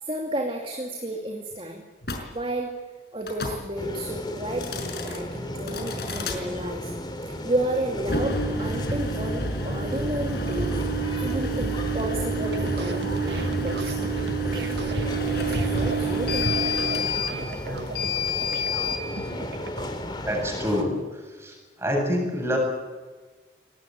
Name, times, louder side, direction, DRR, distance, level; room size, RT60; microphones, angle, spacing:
voice 1, 0.0-1.8 2.3-2.7 3.1-6.9 7.4-10.7 11.2-14.1 15.5-17.0, right 1 dB, 30° right, 2 dB, 2.5 m, -32 dB
sound 1, 2.0-2.2 3.2-3.6 4.5-5.2 5.7-6.4 8.0-19.0, right 1 dB, 60° left, 5.4 m, -28 dB
sound 2, 3.8-20.8, left 1 dB, 25° left, 2.8 m, -35 dB
sound 3, 12.3-19.9, right 3 dB, 70° right, 1.6 m, -38 dB
voice 2, 20.2-22.6, equal, 15° right, 1 dB, 7.9 m, -27 dB
24.5 x 20.0 x 9.4 m, 1.3 s
head